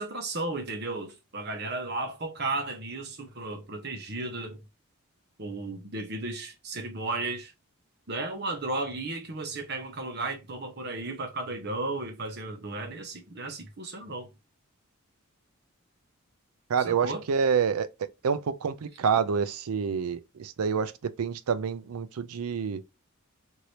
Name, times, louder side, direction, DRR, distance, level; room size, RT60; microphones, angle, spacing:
voice 1, 0.0-4.6 5.4-7.5 8.1-14.3 16.9-17.2, right 2 dB, 50° right, 0.9 m, -34 dB
voice 2, 16.7-17.9 18.2-20.9 21.2-22.8, right 6 dB, 85° right, 0.4 m, -27 dB
2.8 x 2.7 x 3.2 m
head